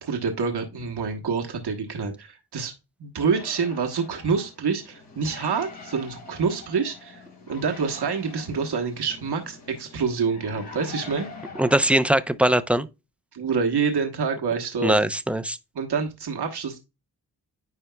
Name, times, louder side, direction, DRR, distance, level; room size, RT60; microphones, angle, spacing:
voice 1, 0.0-2.7 3.0-11.3 13.3-14.9 15.7-16.8, right 5 dB, 65° right, 1.3 m, -27 dB
sound 1, 3.3-11.8, left 4 dB, 75° left, 3.6 m, -43 dB
voice 2, 11.6-12.9 14.8-15.6, right 1 dB, 5° right, 0.6 m, -21 dB
9.7 x 4.5 x 2.3 m
cardioid pair, 60°, 42 cm